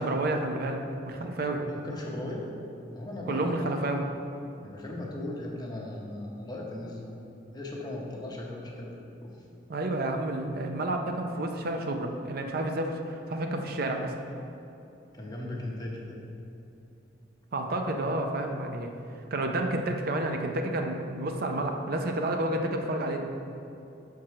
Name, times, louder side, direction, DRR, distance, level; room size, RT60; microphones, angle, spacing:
voice 1, 0.0-1.6 3.3-4.1 9.7-14.1 17.5-18.9 19.3-23.3, right 1 dB, 55° right, 3 dB, 0.5 m, -30 dB
voice 2, 1.5-2.5 2.9-3.5 3.8-3.9 4.6-7.1 7.5-9.4 15.1-16.2, left 1 dB, 20° left, -2 dB, 1.0 m, -37 dB
6.1 x 4.7 x 5.7 m, 2.8 s
head